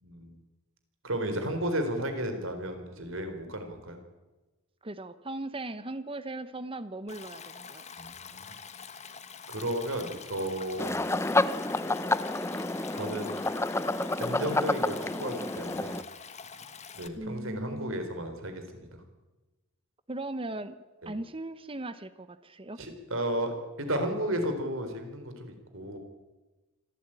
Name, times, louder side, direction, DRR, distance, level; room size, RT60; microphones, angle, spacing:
voice 1, 0.0-0.4 1.0-4.0 8.0-8.6 9.5-10.9 12.9-13.3 14.2-16.0 16.9-19.0 21.0-21.1 22.8-26.0, right 1 dB, 70° right, 7 dB, 4.0 m, -33 dB
voice 2, 4.8-7.8 17.1-18.0 20.1-20.8 21.1-22.8, right 2 dB, 25° right, 13 dB, 0.9 m, -38 dB
Stream, 7.1-17.1, left 6 dB, 35° left, 1.5 m, -46 dB
sound 1, 10.8-16.0, left 2 dB, 10° left, 0.6 m, -29 dB
25.5 x 14.5 x 9.0 m, 1.2 s
head